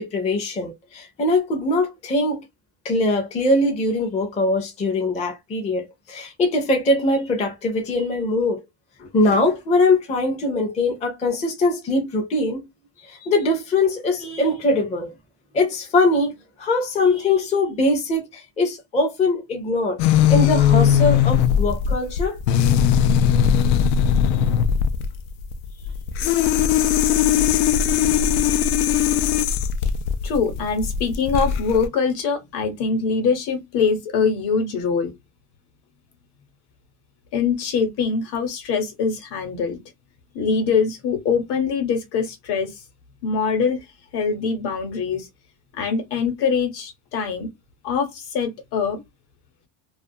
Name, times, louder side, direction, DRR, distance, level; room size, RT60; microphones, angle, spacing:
voice 1, 0.0-2.4 2.8-8.6 9.0-12.7 13.1-15.1 15.5-16.3 16.6-20.0 20.3-22.4, left 2 dB, 15° left, 0.4 m, -22 dB
sound 1, 20.0-31.9, left 9 dB, 90° left, 0.5 m, -19 dB
voice 2, 30.2-35.1 37.3-39.8 40.3-42.7 43.2-43.8 44.1-45.3 45.7-47.5 47.8-49.0, left 5 dB, 55° left, 1.0 m, -23 dB
2.4 x 2.3 x 2.6 m
cardioid pair, 165°, 45 cm